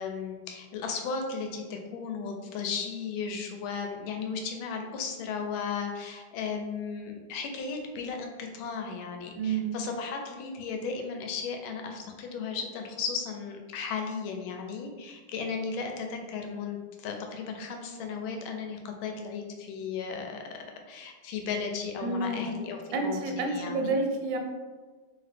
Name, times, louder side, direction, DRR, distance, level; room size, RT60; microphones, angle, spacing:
voice 1, 0.0-20.4 20.9-23.9, left 5 dB, 85° left, 3 dB, 1.4 m, -35 dB
voice 2, 9.4-9.8 22.0-22.6 22.9-24.4, right 3 dB, 75° right, 2 dB, 1.2 m, -29 dB
2.9 x 2.8 x 3.3 m, 1.3 s
omnidirectional pair, 2.2 m